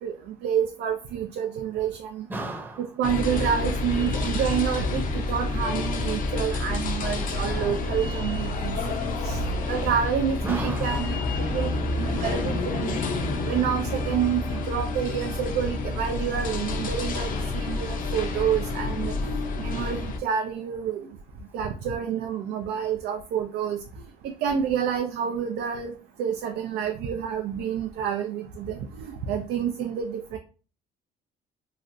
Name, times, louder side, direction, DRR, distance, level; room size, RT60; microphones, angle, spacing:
voice 1, 0.0-2.3 3.0-9.0 9.2-21.1 21.5-23.8 24.2-25.9 26.2-30.4, right 8 dB, 80° right, 0.4 m, -29 dB
voice 2, 2.3-2.9 10.4-11.2 14.5-14.7, right 1 dB, 10° right, 0.7 m, -35 dB
sound 1, 3.0-20.2, left 2 dB, 55° left, 0.6 m, -28 dB
3.1 x 2.5 x 2.6 m
cardioid pair, 110°, 17 cm